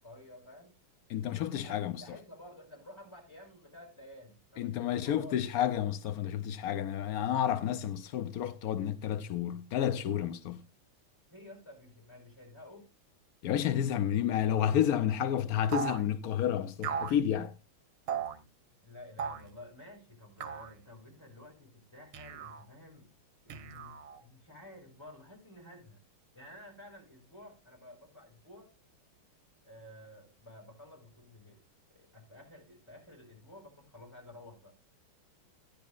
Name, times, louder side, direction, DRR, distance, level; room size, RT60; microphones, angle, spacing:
voice 1, 0.0-0.7 1.5-5.4 11.3-12.9 18.8-23.1 23.4-26.0 26.3-28.7 29.6-31.6 31.9-34.8, left 1 dB, 10° left, 4.8 m, -52 dB
voice 2, 1.1-2.0 4.6-10.6 13.4-17.5, left 10 dB, 80° left, 0.8 m, -30 dB
sound 1, 15.7-16.0 16.8-17.2 18.1-18.4 19.2-19.5 20.4-20.7 22.1-22.6 23.5-24.2, right 7 dB, 90° right, 1.9 m, -37 dB
14.5 x 10.5 x 2.4 m
omnidirectional pair, 2.3 m